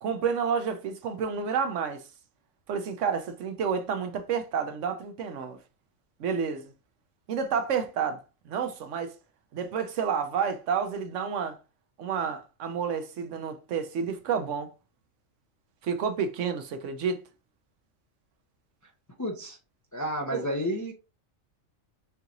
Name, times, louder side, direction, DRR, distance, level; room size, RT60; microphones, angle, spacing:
voice 1, 0.0-2.0 2.7-5.6 6.2-6.7 7.3-8.2 8.5-9.1 9.5-11.6 12.0-14.7 15.8-17.2 20.3-20.5, right 6 dB, 70° right, 1.0 m, -30 dB
voice 2, 19.2-19.6 19.9-20.9, equal, 25° left, 0.4 m, -31 dB
5.5 x 2.5 x 2.8 m
omnidirectional pair, 1.4 m